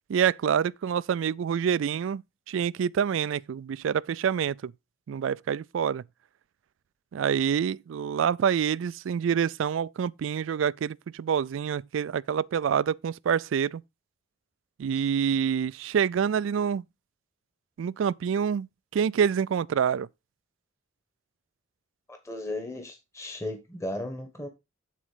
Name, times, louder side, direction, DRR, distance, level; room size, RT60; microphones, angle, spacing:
voice 1, 0.1-4.7 5.1-6.0 7.1-13.8 14.8-16.8 17.8-18.7 18.9-20.1, right 7 dB, 80° right, 0.3 m, -27 dB
voice 2, 22.1-24.5, left 1 dB, 15° left, 1.2 m, -36 dB
9.2 x 4.2 x 5.0 m
head